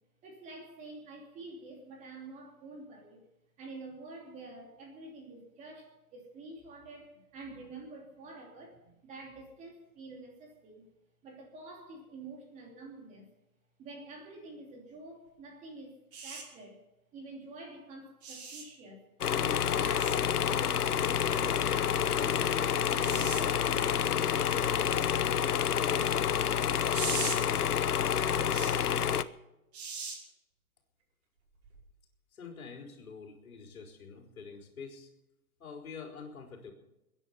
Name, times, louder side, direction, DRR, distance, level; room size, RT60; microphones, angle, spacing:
voice 1, 0.2-3.2 3.6-10.9 11.2-13.3 13.8-16.8 17.1-19.0 19.4-20.8 21.3-26.4, right 3 dB, 15° right, 0 dB, 2.9 m, -48 dB
sound 1, 16.1-16.4 18.2-18.6 20.0-20.2 23.0-23.4 26.9-27.4 28.5-28.7 29.7-30.2 31.6-31.8, right 5 dB, 45° right, 5.5 m, -38 dB
sound 2, 19.2-29.2, left 8 dB, 85° left, 1.0 m, -28 dB
voice 2, 32.3-35.1 35.6-36.7, left 5 dB, 70° left, 2 dB, 4.2 m, -46 dB
22.5 x 10.0 x 5.6 m, 0.94 s
hypercardioid pair, 155°, 44 cm